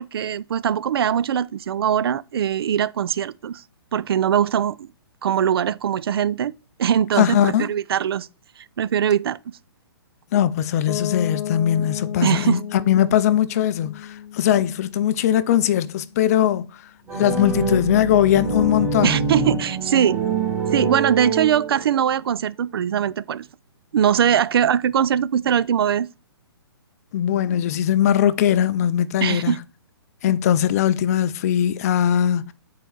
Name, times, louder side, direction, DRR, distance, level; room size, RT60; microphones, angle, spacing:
voice 1, 0.0-3.6 3.9-4.9 5.2-6.5 6.8-8.3 8.8-9.4 12.2-12.6 19.0-20.2 20.7-23.5 23.9-26.1 29.2-29.6, right 9 dB, 70° right, 0.4 m, -21 dB
voice 2, 7.2-7.7 10.3-16.7 17.1-19.2 27.1-29.6 30.2-32.5, left 10 dB, 40° left, 0.4 m, -20 dB
Piano, 10.9-16.6, left 9 dB, 75° left, 0.8 m, -34 dB
sound 1, 17.1-22.0, right 4 dB, 10° right, 1.6 m, -25 dB
7.1 x 4.5 x 3.0 m
hypercardioid pair, 145°, 13 cm